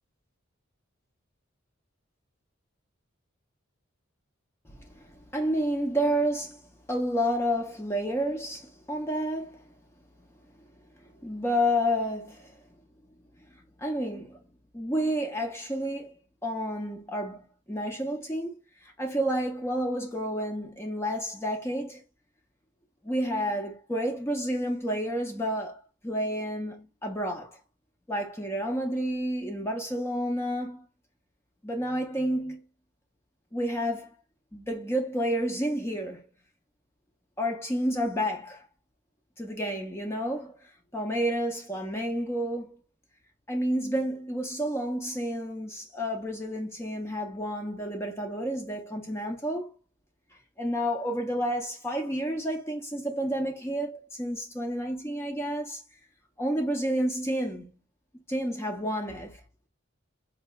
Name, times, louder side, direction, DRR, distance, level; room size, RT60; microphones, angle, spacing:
voice 1, 4.7-6.6 6.9-9.7 11.2-12.6 13.5-14.4 14.7-18.6 18.8-22.0 23.0-27.6 28.1-30.8 31.6-32.6 33.5-34.1 34.5-36.3 37.4-38.7 39.4-42.8 43.5-49.7 50.6-55.8 56.4-57.7 58.3-59.4, equal, 10° left, 0.4 m, -30 dB
4.2 x 2.8 x 2.2 m
head